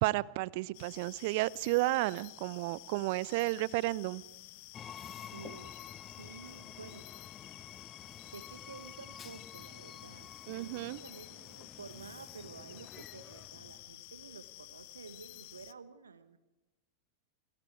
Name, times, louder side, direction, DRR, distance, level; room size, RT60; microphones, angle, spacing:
voice 1, 0.0-4.2 10.5-11.0, right 20 dB, 50° right, 22 dB, 0.7 m, -32 dB
sound 1, 0.7-15.7, left 20 dB, 50° left, 0.9 m, -52 dB
Train, 4.7-13.9, left 8 dB, 25° left, 0.8 m, -50 dB
voice 2, 5.3-5.7 6.1-7.1 8.3-16.4, right 5 dB, 70° right, 12 dB, 1.5 m, -51 dB
29.5 x 25.0 x 4.7 m, 1.1 s
figure-of-eight pair, 90°, 0 cm